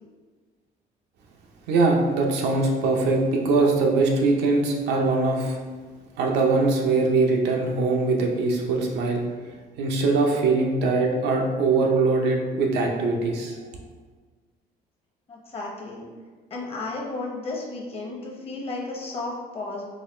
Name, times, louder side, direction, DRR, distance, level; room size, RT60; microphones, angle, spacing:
voice 1, 1.7-5.6 6.2-9.2 9.8-13.6, right 3 dB, 85° right, 0 dB, 0.6 m, -22 dB
voice 2, 15.3-16.1 16.5-19.8, left 2 dB, 35° left, -2 dB, 0.9 m, -33 dB
4.0 x 2.3 x 3.1 m, 1.4 s
cardioid pair, 110°, 17 cm